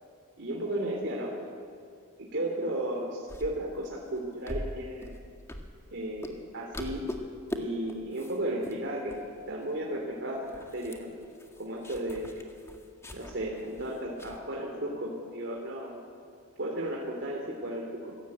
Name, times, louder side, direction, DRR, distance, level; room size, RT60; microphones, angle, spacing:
voice 1, 0.4-1.3 2.2-5.1 5.9-7.1 7.6-11.1 11.6-12.5 13.1-16.0 16.6-18.1, right 1 dB, 55° right, -1 dB, 3.2 m, -34 dB
sound 1, 3.3-6.0 6.2-6.5 6.7-7.6 7.9-8.4 8.6-8.8 9.1-9.6 9.9-10.0 10.3-14.4, left 1 dB, 15° left, 1.8 m, -41 dB
26.0 x 16.5 x 8.7 m, 2.2 s
head